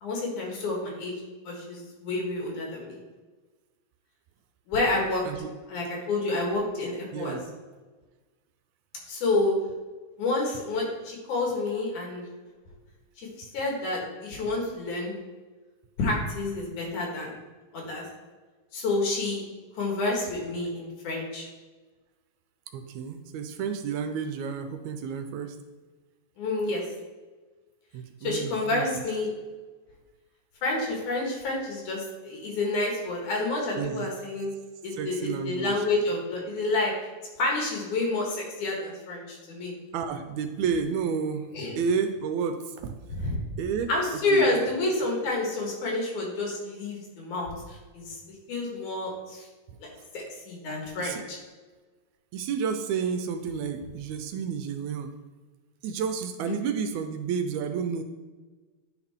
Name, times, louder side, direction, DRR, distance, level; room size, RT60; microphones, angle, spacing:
voice 1, 0.0-1.1 1.4-3.0 4.7-5.2 5.7-7.4 9.1-9.5 10.2-12.2 13.2-15.1 16.0-17.4 17.7-18.0 18.7-19.5 19.8-21.5 26.4-26.8 28.2-29.3 30.6-34.5 34.8-36.9 37.4-39.7 41.5-41.7 43.1-43.3 43.9-48.2 48.5-49.5 49.8-51.4 56.4-56.6, left 2 dB, 80° left, -1 dB, 3.1 m, -29 dB
voice 2, 7.1-7.5 22.7-25.6 27.9-29.0 33.8-34.1 35.0-35.8 39.9-43.0 43.6-43.9 44.3-44.5 51.0-51.2 52.3-55.2 55.8-58.0, right 6 dB, 80° right, 7 dB, 1.8 m, -31 dB
10.0 x 4.7 x 3.5 m, 1.3 s
omnidirectional pair, 3.4 m